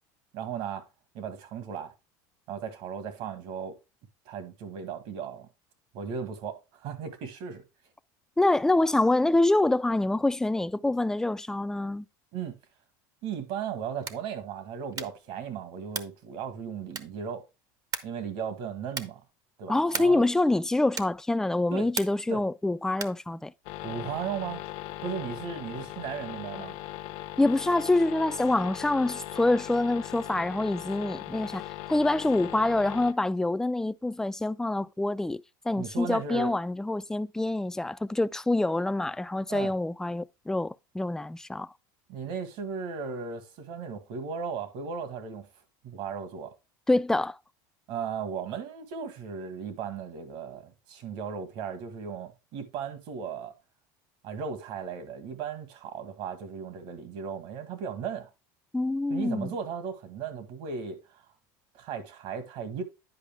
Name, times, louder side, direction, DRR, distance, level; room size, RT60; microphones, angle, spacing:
voice 1, 0.3-0.8 1.1-1.9 2.5-3.8 4.3-5.5 5.9-7.6 12.3-12.6 13.2-17.5 18.0-19.2 19.6-20.3 21.7-21.9 22.3-22.4 23.8-24.6 25.0-26.8 35.8-36.5 39.5-39.7 42.1-45.5 45.8-46.5 47.9-53.5 54.2-58.3 59.1-61.2 61.7-62.8, right 6 dB, 65° right, 1.7 m, -36 dB
voice 2, 8.4-12.0 19.7-23.5 27.4-31.6 31.9-35.4 35.7-41.7 46.9-47.4 58.7-59.5, left 2 dB, 5° left, 0.3 m, -26 dB
sound 1, 13.9-14.3 14.9-15.3 15.9-16.3 16.9-17.3 17.9-18.3 18.9-19.3 19.9-20.3 20.9-21.3 21.9-22.3 22.9-23.3, right 7 dB, 35° right, 0.7 m, -37 dB
sound 2, 23.6-33.1, left 15 dB, 65° left, 0.9 m, -39 dB
9.9 x 5.0 x 3.5 m
supercardioid pair, 110°, 10 cm